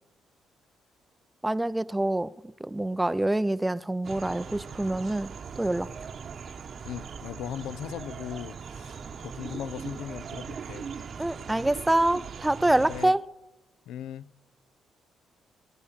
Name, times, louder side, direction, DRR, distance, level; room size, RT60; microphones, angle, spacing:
voice 1, 1.4-2.3 2.6-5.9 11.2-13.2, right 1 dB, 10° right, 0.4 m, -26 dB
sound 1, 4.0-13.1, right 6 dB, 50° right, 0.9 m, -40 dB
voice 2, 6.8-10.9 12.8-13.2 13.9-14.3, left 10 dB, 85° left, 0.4 m, -38 dB
20.5 x 9.8 x 7.2 m
cardioid pair, 90°, 0 cm